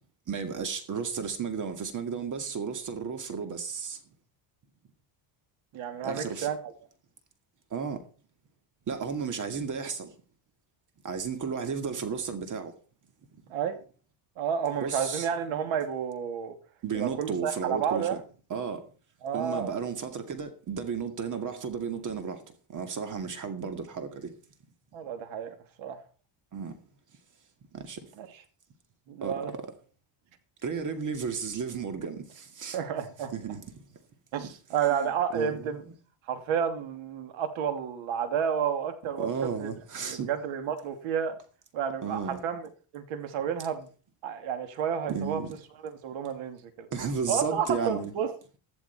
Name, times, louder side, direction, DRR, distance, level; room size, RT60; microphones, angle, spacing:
voice 1, 0.3-4.0 6.0-6.5 7.7-8.0 8.9-10.1 11.0-12.7 13.3-13.4 14.8-15.3 16.8-18.2 18.5-18.8 19.3-22.4 22.7-24.3 26.5-26.8 27.7-28.1 29.2-29.6 30.6-32.8 33.3-33.8 34.4-34.5 34.9-35.7 39.2-40.3 42.0-42.4 45.1-45.5 46.9-48.1, right 6 dB, 40° right, 2.1 m, -33 dB
voice 2, 5.7-6.7 13.5-13.8 14.4-16.5 16.9-18.2 19.2-19.7 24.9-26.0 28.2-28.3 29.1-29.5 32.7-33.3 34.3-35.8 36.3-39.3 39.6-39.7 40.1-41.4 41.7-43.9 44.2-45.4 45.8-46.9 47.3-48.4, right 7 dB, 70° right, 2.8 m, -31 dB
14.0 x 12.0 x 4.5 m
cardioid pair, 135°, 49 cm